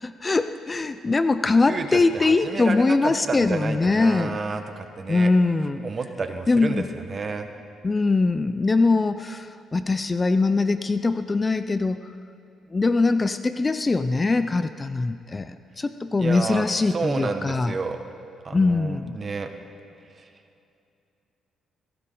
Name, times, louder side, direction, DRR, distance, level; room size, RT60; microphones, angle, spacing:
voice 1, 0.0-4.4 5.1-5.8 6.5-6.9 7.8-12.0 12.7-17.7 18.5-19.1, left 3 dB, 25° left, 11 dB, 0.5 m, -22 dB
voice 2, 1.6-5.3 5.8-7.5 16.2-18.0 18.4-19.5 20.1-20.3, right 4 dB, 40° right, 6 dB, 1.2 m, -30 dB
18.0 x 16.5 x 3.9 m, 2.5 s
cardioid pair, 90°, 0 cm